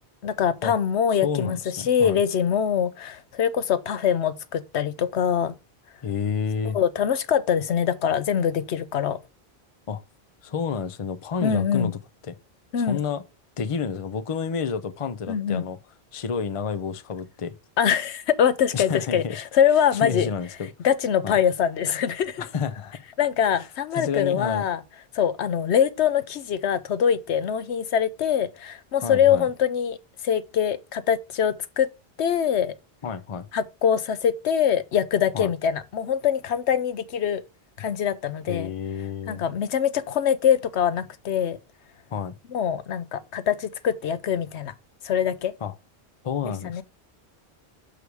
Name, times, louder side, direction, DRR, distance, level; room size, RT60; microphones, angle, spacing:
voice 1, 0.2-5.5 6.7-9.2 11.4-11.9 12.7-13.0 15.3-15.6 17.8-20.3 20.8-22.4 23.2-24.8 25.1-30.0 30.2-31.9 32.2-32.8 33.5-37.4 37.8-38.7 39.3-41.6 42.5-44.7 45.0-45.5 46.4-46.8, left 8 dB, 80° left, 1.0 m, -23 dB
voice 2, 1.2-2.2 6.0-6.8 9.9-10.0 10.4-12.0 12.3-12.4 12.8-13.2 13.6-15.8 16.1-17.5 18.7-19.4 20.0-20.7 21.2-21.4 22.4-23.0 23.9-24.6 29.0-29.5 33.0-33.5 35.3-35.5 38.5-39.4 42.1-42.3 45.6-45.7 46.2-46.8, left 6 dB, 35° left, 0.6 m, -29 dB
6.7 x 5.0 x 4.7 m
omnidirectional pair, 1.1 m